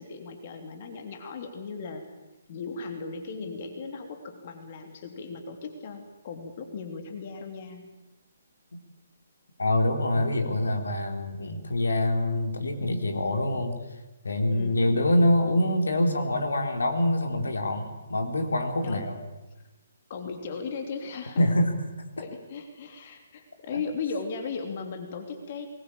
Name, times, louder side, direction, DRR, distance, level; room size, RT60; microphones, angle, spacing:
voice 1, 0.0-2.0 2.5-7.9 13.1-13.6 14.5-14.9 18.8-19.1 20.1-21.4 22.2-25.7, left 5 dB, 40° left, 5 dB, 3.1 m, -37 dB
voice 2, 9.6-13.7 14.2-19.2 21.4-21.8, left 1 dB, 70° left, 5 dB, 3.6 m, -25 dB
23.5 x 20.5 x 8.8 m, 1.1 s
figure-of-eight pair, 135°, 0 cm